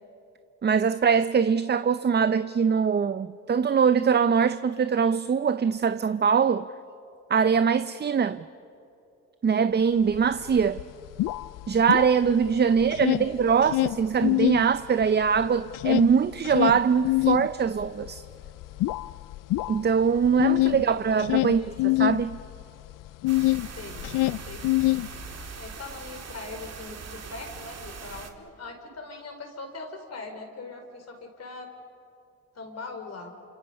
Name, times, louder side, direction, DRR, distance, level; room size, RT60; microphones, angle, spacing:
voice 1, 0.6-6.7 7.3-8.4 9.4-10.8 11.7-18.2 19.7-22.4, right 6 dB, 35° right, 0.6 m, -23 dB
sound 1, 10.1-10.2 10.5-12.5 12.8-14.6 15.0-23.7 23.9-25.5, left 19 dB, 80° left, 0.5 m, -25 dB
voice 2, 13.0-13.4 20.9-22.1 23.8-24.1 24.5-24.9 25.6-31.7 32.5-33.3, left 3 dB, 50° left, 4.2 m, -41 dB
sound 2, 23.3-28.3, right 5 dB, 55° right, 2.2 m, -41 dB
28.5 x 26.5 x 5.4 m
supercardioid pair, 65°, 32 cm